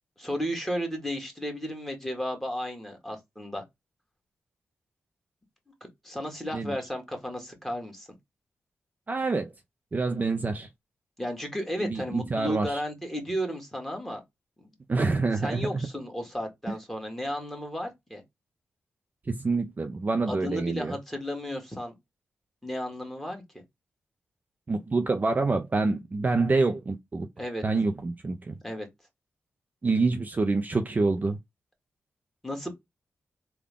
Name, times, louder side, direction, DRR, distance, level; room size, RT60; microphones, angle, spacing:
voice 1, 0.2-3.6 6.0-8.1 11.2-14.2 14.6-14.7 15.4-18.2 20.3-21.9 22.6-23.4 27.4-27.6 28.6-28.9 32.4-32.7, equal, 5° left, 1.6 m, -33 dB
voice 2, 9.1-9.5 9.9-10.7 11.8-12.8 14.9-15.9 19.3-21.0 24.7-27.3 27.6-28.6 29.8-31.4, right 3 dB, 35° right, 0.5 m, -27 dB
3.6 x 2.3 x 3.6 m
cardioid pair, 65°, 5 cm